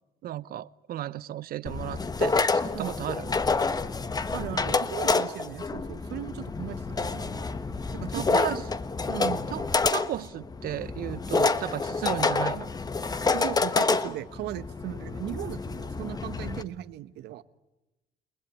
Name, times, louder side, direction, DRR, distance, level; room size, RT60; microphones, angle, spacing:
voice 1, 0.2-3.3 8.1-8.6 9.5-9.6 9.9-12.7, right 12 dB, 60° right, 1.0 m, -34 dB
sound 1, 1.6-16.6, left 4 dB, 25° left, 1.3 m, -28 dB
voice 2, 4.3-7.4 7.9-8.6 9.1-9.7 13.3-17.4, right 14 dB, 80° right, 1.3 m, -37 dB
sound 2, 7.2-12.2, left 3 dB, 80° left, 6.7 m, -54 dB
30.0 x 20.5 x 9.5 m
cardioid pair, 110°, 17 cm